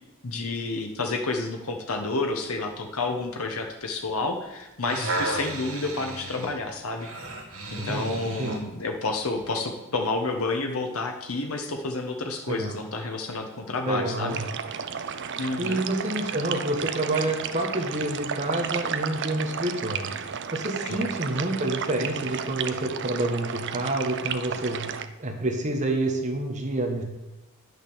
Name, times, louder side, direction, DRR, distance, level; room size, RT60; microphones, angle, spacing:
voice 1, 0.2-7.1 7.7-14.4 15.4-15.8 20.8-21.0, left 3 dB, 80° left, 3 dB, 1.2 m, -30 dB
sound 1, 4.6-8.7 9.3-9.5, right 2 dB, 75° right, 1.7 m, -33 dB
voice 2, 7.8-8.5 12.5-12.7 13.9-14.4 15.6-20.1 20.5-24.9 25.2-27.0, right 1 dB, 35° right, 1 dB, 1.5 m, -28 dB
sound 2, 14.3-25.1, right 7 dB, 55° right, 0.6 m, -33 dB
10.0 x 6.4 x 7.0 m, 1.0 s
head